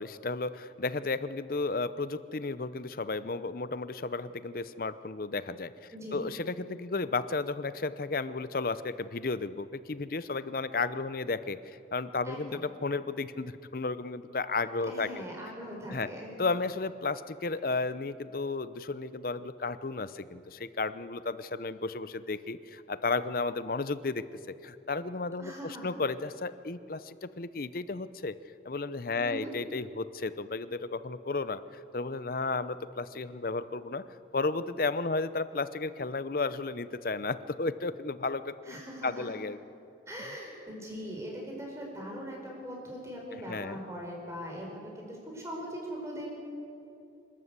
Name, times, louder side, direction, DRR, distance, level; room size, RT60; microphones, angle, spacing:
voice 1, 0.0-5.7 6.1-15.1 15.9-16.1 16.4-24.2 24.6-28.3 28.6-31.6 31.9-34.0 34.3-38.7 39.0-39.6 43.5-43.8, left 3 dB, 50° left, 14 dB, 0.7 m, -33 dB
voice 2, 5.9-6.3 12.2-12.6 14.9-16.4 25.4-25.9 29.2-29.5 38.6-39.3 40.1-46.3, equal, 15° right, -1 dB, 4.8 m, -41 dB
27.0 x 12.5 x 8.2 m, 2.7 s
head